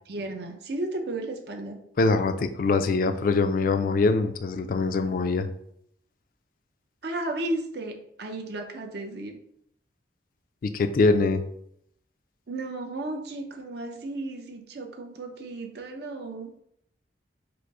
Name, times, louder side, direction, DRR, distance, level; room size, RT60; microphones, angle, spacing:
voice 1, 0.1-1.8 7.0-9.4 12.5-16.5, right 2 dB, 60° right, 3 dB, 0.7 m, -34 dB
voice 2, 2.0-5.5 10.6-11.4, left 3 dB, 50° left, 9 dB, 0.3 m, -23 dB
4.8 x 2.0 x 4.7 m, 0.73 s
head